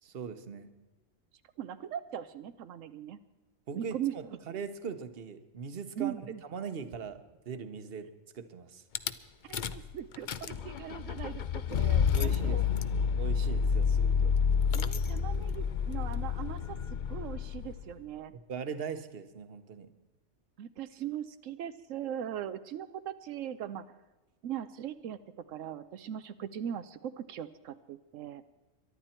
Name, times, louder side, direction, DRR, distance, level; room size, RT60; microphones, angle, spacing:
voice 1, 0.0-0.7 3.7-6.1 6.4-8.1 8.3-8.8 11.9-12.9 13.2-14.3 18.5-19.9, right 6 dB, 50° right, 10 dB, 1.2 m, -40 dB
voice 2, 1.6-3.2 3.7-4.4 6.0-6.4 9.4-12.6 14.7-16.8 17.1-18.3 20.6-23.9 24.4-25.2 25.5-28.4, right 10 dB, 85° right, 11 dB, 1.0 m, -39 dB
Rattle / Car / Engine starting, 9.0-9.1 9.5-9.9 10.1-17.9, left 6 dB, 50° left, 0.6 m, -29 dB
23.0 x 11.5 x 4.4 m, 1.1 s
omnidirectional pair, 1.3 m